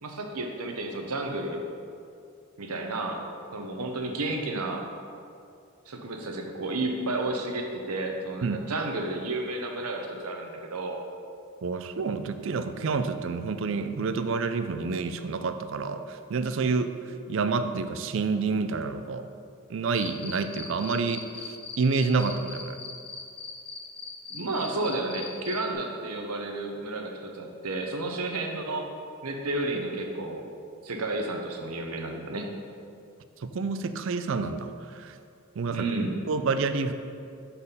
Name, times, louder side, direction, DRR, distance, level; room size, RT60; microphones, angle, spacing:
voice 1, 0.0-1.6 2.6-3.2 3.5-4.9 5.9-11.0 24.3-28.9 29.2-30.4 30.8-32.5 35.7-36.2, right 2 dB, 85° right, 2 dB, 0.8 m, -31 dB
voice 2, 11.6-16.9 17.3-19.3 19.7-22.8 33.4-35.2 35.6-35.9 36.3-36.9, right 4 dB, 55° right, 10 dB, 0.4 m, -28 dB
Cricket, 19.9-25.6, left 5 dB, 25° left, 0.7 m, -39 dB
6.9 x 4.2 x 5.5 m, 2.4 s
head